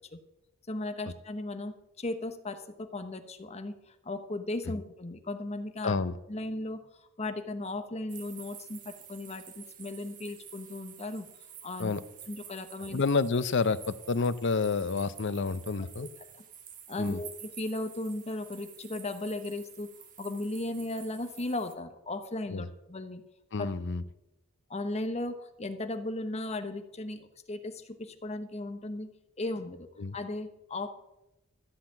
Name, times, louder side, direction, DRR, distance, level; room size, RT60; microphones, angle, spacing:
voice 1, 0.7-3.7 4.0-5.9 6.3-6.8 7.2-11.3 11.6-11.9 12.3-13.0 16.0-16.1 16.9-19.9 20.2-23.2 23.6-23.7 24.7-29.1 29.4-29.9 30.1-30.9, left 2 dB, 30° left, 9 dB, 0.9 m, -36 dB
voice 2, 5.8-6.1 11.8-12.0 12.9-16.1 17.0-17.2 22.5-22.7 23.5-24.0 30.0-30.2, left 4 dB, 55° left, 15 dB, 0.6 m, -29 dB
sound 1, 8.1-21.8, right 9 dB, 35° right, 1.2 m, -50 dB
13.0 x 5.8 x 8.7 m, 0.90 s
head